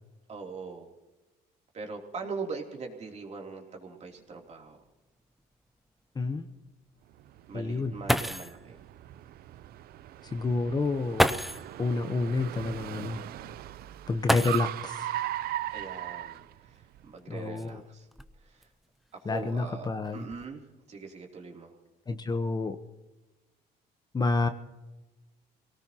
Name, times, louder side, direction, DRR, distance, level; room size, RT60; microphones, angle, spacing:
voice 1, 0.3-0.9 1.7-4.8 7.5-8.8 15.7-18.1 18.4-18.7 19.1-21.7, right 4 dB, 40° right, 1 dB, 3.1 m, -41 dB
sound 1, 4.2-4.3 4.7-4.8 5.4-5.5 7.7-7.8 8.1-8.6 9.9-10.0 11.1-11.7 14.2-15.0 16.3-16.4 17.2-18.6 19.3-19.7 20.0-20.4, equal, ahead, 0.6 m, -30 dB
voice 2, 6.2-6.5 7.5-7.9 10.3-11.4 11.8-13.2 14.1-15.1 17.3-17.8 19.3-20.2 22.1-22.8 24.1-24.5, left 3 dB, 25° left, 8 dB, 1.0 m, -29 dB
Car, 7.2-17.1, right 13 dB, 65° right, 0.6 m, -38 dB
25.5 x 18.0 x 2.9 m, 1.1 s
cardioid pair, 110°, 17 cm